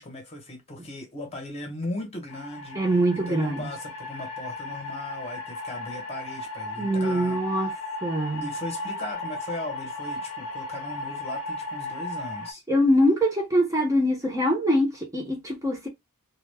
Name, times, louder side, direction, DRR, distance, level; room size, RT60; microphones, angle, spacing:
voice 1, 0.0-2.8 3.1-7.8 8.4-12.6, left 1 dB, 30° left, 0.9 m, -38 dB
sound 1, 2.3-12.5, left 2 dB, 90° left, 0.7 m, -35 dB
voice 2, 2.8-3.6 6.8-7.7 8.0-8.4 12.7-15.9, equal, 15° right, 0.7 m, -23 dB
2.3 x 2.2 x 3.2 m
head